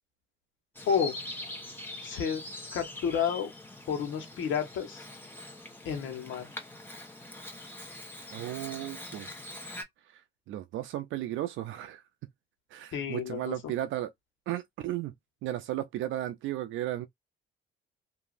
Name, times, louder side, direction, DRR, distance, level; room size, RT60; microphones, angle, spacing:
Bird vocalization bird call bird song, 0.7-9.8, left 1 dB, 10° left, 1.3 m, -43 dB
voice 1, 0.9-1.2 2.0-2.4 2.7-3.5 3.9-5.0 5.8-6.5 12.9-13.5, left 7 dB, 75° left, 1.2 m, -30 dB
voice 2, 8.3-9.3 10.5-12.0 12.7-14.1 14.5-15.1 15.4-17.1, right 13 dB, 80° right, 0.4 m, -34 dB
2.8 x 2.7 x 2.5 m
cardioid pair, 90°, 20 cm